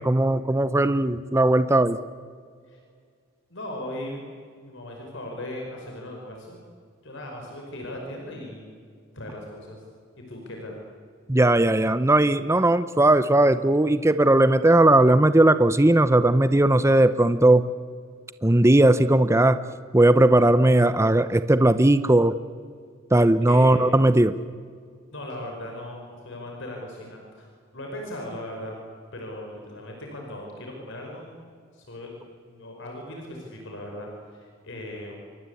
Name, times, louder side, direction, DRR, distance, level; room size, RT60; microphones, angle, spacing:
voice 1, 0.0-2.0 11.3-17.6 18.4-19.6 19.9-22.3 23.1-24.4, right 1 dB, 15° right, 12 dB, 0.7 m, -18 dB
voice 2, 3.5-4.3 4.6-6.6 7.0-8.7 9.1-9.8 10.2-10.7 23.5-24.0 25.1-27.5 27.7-28.8 29.1-31.3 31.7-32.1 32.5-35.1, left 1 dB, 65° left, 1 dB, 5.6 m, -38 dB
28.0 x 23.5 x 8.5 m, 2.1 s
head